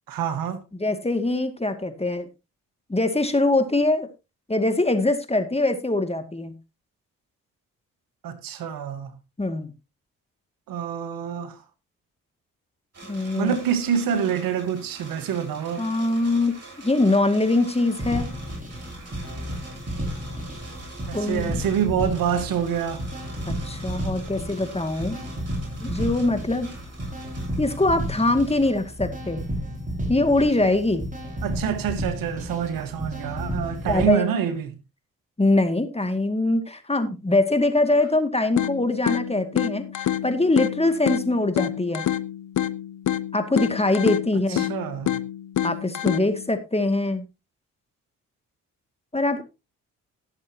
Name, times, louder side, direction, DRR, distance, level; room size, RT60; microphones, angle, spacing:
voice 1, 0.1-0.6 8.2-9.1 10.7-11.6 13.3-15.9 21.0-23.0 31.4-34.8 44.5-45.2, right 8 dB, 80° right, 1.6 m, -26 dB
voice 2, 0.7-2.3 2.9-4.1 4.5-6.5 9.4-9.7 13.1-13.5 15.8-16.6 16.8-18.3 21.1-21.6 23.5-25.2 25.8-26.7 27.6-29.4 30.1-31.1 33.9-34.2 35.4-42.1 43.3-44.7 45.6-47.2 49.1-49.4, left 2 dB, 20° left, 2.3 m, -23 dB
sound 1, 12.9-28.7, right 2 dB, 50° right, 7.2 m, -45 dB
sound 2, 17.9-34.1, equal, 25° right, 5.3 m, -32 dB
sound 3, 38.6-46.6, left 11 dB, 65° left, 0.9 m, -28 dB
18.0 x 7.4 x 2.9 m
supercardioid pair, 45°, 33 cm